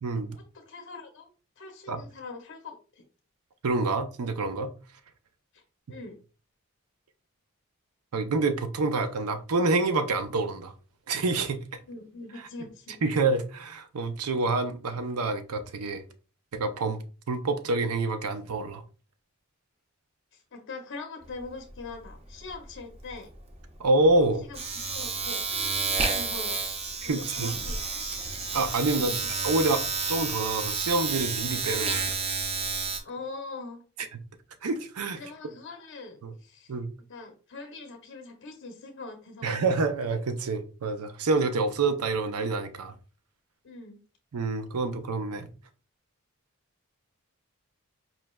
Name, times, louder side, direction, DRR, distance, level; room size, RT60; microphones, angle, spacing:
voice 1, 0.0-0.4 1.9-2.0 3.6-4.7 5.9-6.0 8.1-10.7 11.1-11.8 13.0-16.0 16.5-18.8 23.8-24.4 27.0-27.5 28.5-29.1 29.4-32.0 34.1-34.2 34.6-35.2 36.2-36.3 36.7-36.9 39.4-42.9 44.3-45.5, right 3 dB, 90° right, 0.6 m, -27 dB
voice 2, 0.5-1.3 1.6-3.0 5.5-5.6 5.9-6.2 11.9-13.0 20.3-23.3 24.4-24.6 24.9-26.6 27.0-27.8 28.9-29.3 33.0-33.8 35.1-36.7 37.1-39.5 43.6-44.0, left 3 dB, 55° left, 0.6 m, -42 dB
Domestic sounds home sounds, 21.2-21.4 21.7-33.0, right 4 dB, 25° right, 0.5 m, -31 dB
4.6 x 3.1 x 2.2 m
head